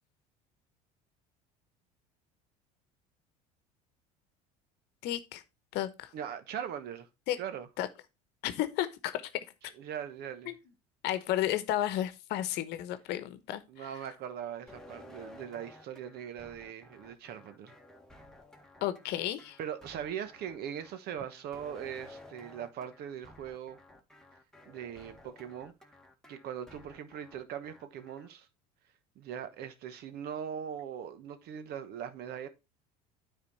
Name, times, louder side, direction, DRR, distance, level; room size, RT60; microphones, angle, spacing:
voice 1, 5.0-5.4 5.7-6.1 7.3-7.4 7.8-7.9 8.4-9.2 10.5-10.6 11.0-13.9 18.8-19.6, left 13 dB, 60° left, 1.0 m, -32 dB
voice 2, 6.1-7.1 7.4-7.7 9.7-10.5 13.7-17.7 19.6-23.8 24.7-25.7 26.3-28.5 29.2-32.5, right 9 dB, 55° right, 1.1 m, -40 dB
sound 1, 14.7-28.3, left 1 dB, 5° left, 1.7 m, -54 dB
9.7 x 4.2 x 4.1 m
hypercardioid pair, 75°, 19 cm